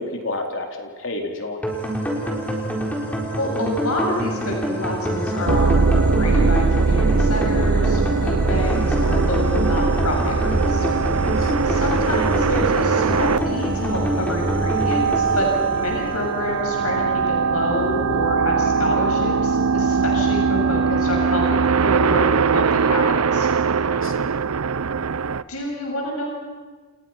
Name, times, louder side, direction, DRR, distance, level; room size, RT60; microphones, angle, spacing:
voice 1, 0.0-1.6 11.0-11.5 23.8-24.3, left 2 dB, 60° left, 2 dB, 3.9 m, -31 dB
sound 1, 1.6-16.7, equal, 5° left, 4.1 m, -26 dB
voice 2, 3.4-10.8 11.6-15.5 15.7-23.0 23.3-23.5 25.5-26.3, left 1 dB, 90° left, 0 dB, 7.3 m, -28 dB
sound 2, 5.5-25.4, right 5 dB, 90° right, 0.7 m, -21 dB
30.0 x 29.5 x 5.9 m, 1.4 s
head